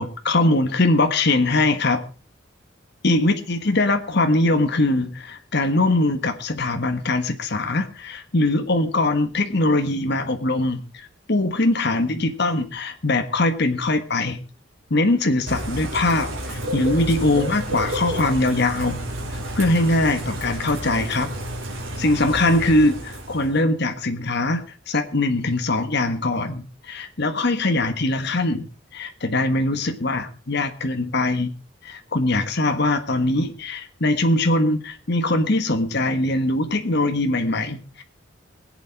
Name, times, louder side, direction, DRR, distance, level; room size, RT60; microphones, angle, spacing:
voice 1, 0.0-2.0 3.0-14.4 14.9-19.0 19.3-21.3 22.0-28.7 28.9-31.5 31.8-38.0, left 2 dB, 55° left, 7 dB, 1.5 m, -22 dB
Bird / Rain, 15.5-23.6, equal, 85° right, 3.5 m, -30 dB
22.0 x 8.5 x 4.7 m, 0.36 s
head